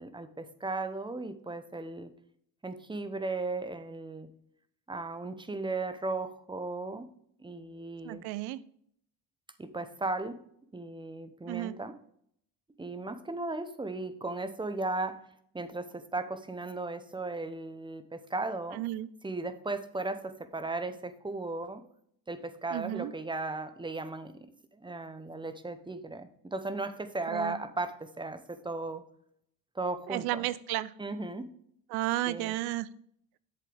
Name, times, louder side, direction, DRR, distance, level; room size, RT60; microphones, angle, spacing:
voice 1, 0.0-2.1 2.6-4.3 4.9-7.1 7.4-8.2 9.6-10.4 10.7-12.0 12.8-15.2 15.5-18.8 19.2-21.8 22.3-29.0 29.7-30.5 31.0-31.5 32.3-32.5, right 2 dB, 10° right, 11 dB, 0.9 m, -36 dB
voice 2, 8.0-8.6 11.5-11.8 18.7-19.1 22.7-23.1 27.3-27.6 30.1-30.9 31.9-32.9, right 16 dB, 75° right, 18 dB, 0.6 m, -32 dB
7.7 x 7.5 x 3.5 m, 0.67 s
supercardioid pair, 95°, 38 cm